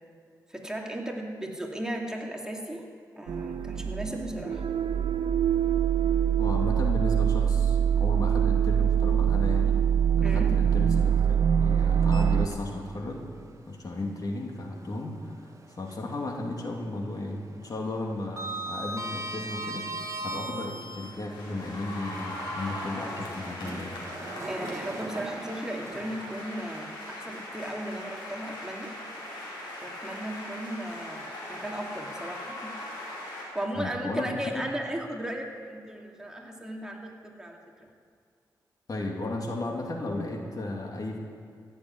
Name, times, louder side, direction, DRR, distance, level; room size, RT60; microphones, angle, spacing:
voice 1, 0.5-2.9 3.2-4.6 10.2-10.5 24.5-28.9 29.8-32.8 33.5-37.9, right 1 dB, 10° right, 0 dB, 2.5 m, -36 dB
sound 1, 3.3-12.5, right 8 dB, 75° right, 0.7 m, -24 dB
voice 2, 6.4-9.8 10.2-13.3 13.7-24.1 33.7-34.3 38.9-41.2, left 2 dB, 50° left, 1 dB, 2.6 m, -34 dB
Sliding door, 12.0-13.0 13.4-13.5 15.2-16.3 16.5-16.9 17.2-21.3 21.9-27.1, right 2 dB, 40° right, 1.4 m, -39 dB
sound 2, 21.0-33.4, left 1 dB, 90° left, 4.6 m, -40 dB
16.0 x 7.7 x 9.4 m, 2.3 s
cardioid pair, 55°, 8 cm